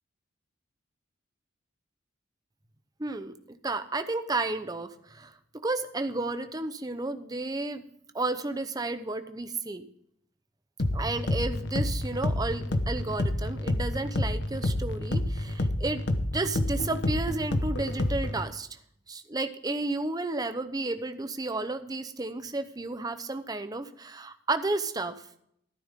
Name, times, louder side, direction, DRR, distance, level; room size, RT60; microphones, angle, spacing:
voice 1, 3.0-5.3 5.6-7.8 8.1-9.9 10.9-16.0 16.3-18.7 19.1-25.2, right 2 dB, 20° right, 9 dB, 0.8 m, -32 dB
sound 1, 10.8-18.5, left 1 dB, 60° left, 1.0 m, -29 dB
13.0 x 11.5 x 3.7 m, 0.70 s
head